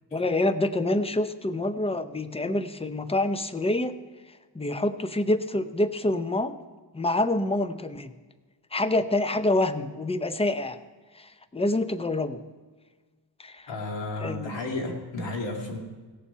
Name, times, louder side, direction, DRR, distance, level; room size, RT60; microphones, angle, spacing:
voice 1, 0.1-4.0 4.5-6.6 6.9-8.1 8.7-10.8 11.2-12.4 13.4-13.7 14.2-14.5, left 2 dB, 15° left, 11 dB, 0.6 m, -26 dB
voice 2, 13.7-15.8, left 2 dB, 80° left, 2 dB, 2.2 m, -32 dB
17.0 x 7.1 x 5.6 m, 1.4 s
wide cardioid pair, 90°, 44 cm